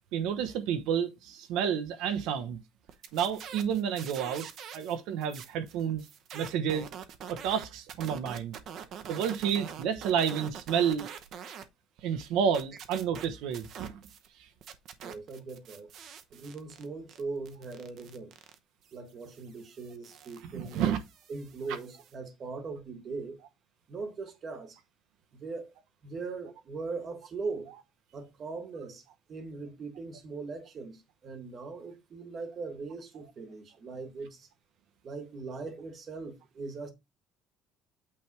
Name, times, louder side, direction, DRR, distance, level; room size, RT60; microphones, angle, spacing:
voice 1, 0.1-2.6 3.1-4.4 4.7-6.0 6.3-6.9 7.3-8.5 9.1-11.1 12.0-13.9 20.5-21.0, right 8 dB, 75° right, 1.0 m, -30 dB
sound 1, 2.9-5.0 5.2-11.7 12.0-14.3 14.6-22.1, right 8 dB, 45° right, 0.8 m, -46 dB
voice 2, 15.0-15.9 16.3-18.3 18.9-20.9 21.3-23.4 23.9-24.8 25.3-25.7 26.0-27.7 28.1-34.5 35.0-36.9, right 4 dB, 30° right, 1.4 m, -40 dB
8.6 x 3.4 x 4.6 m
cardioid pair, 170°, 0 cm